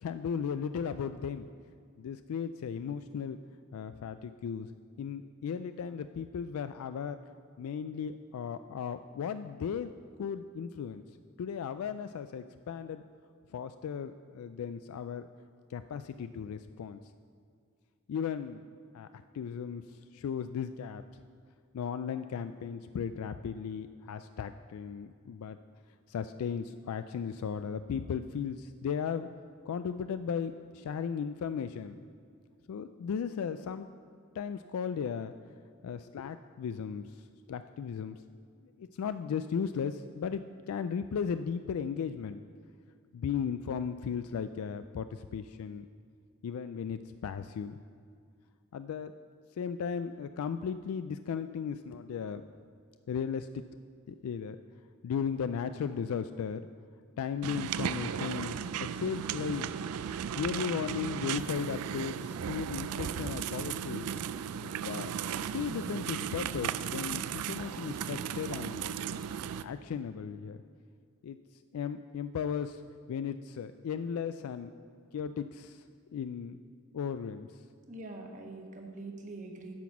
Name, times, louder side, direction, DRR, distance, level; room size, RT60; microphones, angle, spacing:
voice 1, 0.0-1.5 2.0-3.4 3.7-4.7 5.0-7.2 7.6-9.9 10.2-11.0 11.4-13.0 13.5-15.3 15.7-17.0 18.1-18.7 18.9-21.0 21.7-25.6 26.1-29.3 29.7-32.0 32.7-33.9 34.3-35.3 35.8-38.2 38.8-42.4 43.1-45.9 46.4-47.8 48.7-49.2 49.6-52.4 53.1-53.6 54.1-54.6 55.0-56.7 57.2-59.8 60.4-64.1 64.6-69.0 69.6-70.6 71.2-71.4 71.7-72.8 73.1-74.7 75.1-75.9 76.1-76.6 76.9-77.6, left 7 dB, 75° left, 11 dB, 0.3 m, -36 dB
sound 1, 57.4-69.6, right 8 dB, 90° right, 0.4 m, -36 dB
voice 2, 77.9-79.8, right 2 dB, 35° right, 2 dB, 1.1 m, -44 dB
10.5 x 6.0 x 7.1 m, 2.3 s
head